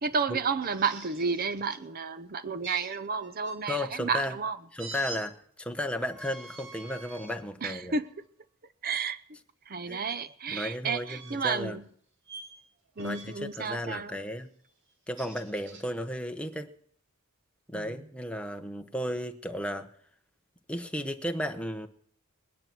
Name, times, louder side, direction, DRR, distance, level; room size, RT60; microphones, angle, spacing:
voice 1, 0.0-4.6 7.6-8.2 8.8-9.2 9.7-11.9 13.0-14.2 17.7-18.1, right 5 dB, 40° right, 0.7 m, -31 dB
sound 1, 0.6-1.8 2.6-3.6 4.8-5.2 6.1-7.4 8.0-8.2 10.0-10.2 11.0-11.6 12.2-12.6 13.0-13.5 14.9-15.8, right 3 dB, 60° right, 2.6 m, -46 dB
voice 2, 3.7-4.3 4.7-7.9 9.9-10.1 10.5-11.8 13.0-14.5 15.1-16.7 17.7-19.9 20.7-21.9, equal, 5° left, 1.0 m, -34 dB
20.5 x 9.9 x 6.1 m
head